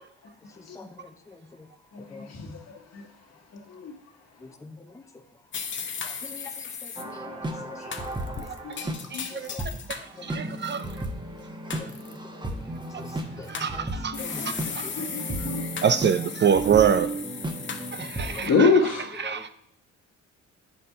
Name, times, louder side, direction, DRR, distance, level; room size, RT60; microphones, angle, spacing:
voice 1, 0.7-1.4 2.1-2.3 4.6-5.0 6.0-7.4 7.7-7.8 9.3-9.8 10.2-10.6 11.8-12.6 13.0-13.1 13.4-13.9 14.2-14.9 18.3-18.6 19.2-19.4, left 3 dB, 10° left, 0.7 m, -44 dB
voice 2, 1.9-3.1 3.5-3.9 7.0-7.3 7.8-7.9 8.4-9.4 13.9-15.6 18.3-19.3, left 4 dB, 55° left, 1.5 m, -28 dB
sound 1, 5.5-7.0 7.9-10.1 10.5-11.1 11.7-12.2 13.1-13.7 14.1-18.5, left 6 dB, 40° left, 0.8 m, -37 dB
sound 2, 7.0-9.0 9.6-9.7 10.1-18.8, right 1 dB, 15° right, 1.0 m, -34 dB
voice 3, 9.1-9.5 9.9-10.8 13.6-14.2 14.4-14.9 15.8-17.1 17.9-18.7 19.2-19.5, right 8 dB, 40° right, 0.4 m, -25 dB
8.5 x 4.2 x 5.6 m
cardioid pair, 90°, 30 cm